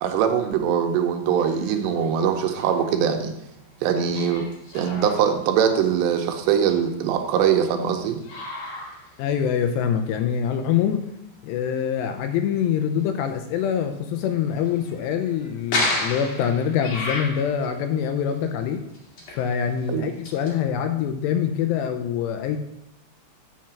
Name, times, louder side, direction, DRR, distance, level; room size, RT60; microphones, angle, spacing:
voice 1, 0.0-3.3 3.8-4.5 4.7-8.2 19.9-20.1, right 8 dB, 85° right, 5 dB, 2.8 m, -22 dB
sound 1, 1.3-2.2 2.5-3.0 4.1-7.5 8.0-9.6 10.2-10.3 10.9-11.0 13.9-14.2 14.6-17.8 18.2-18.5 18.9-20.5, left 2 dB, 45° left, 2.3 m, -33 dB
voice 2, 9.2-11.0 11.4-18.8 19.3-22.6, left 8 dB, 85° left, 6 dB, 2.6 m, -24 dB
7.5 x 5.8 x 5.9 m, 0.78 s
omnidirectional pair, 5.2 m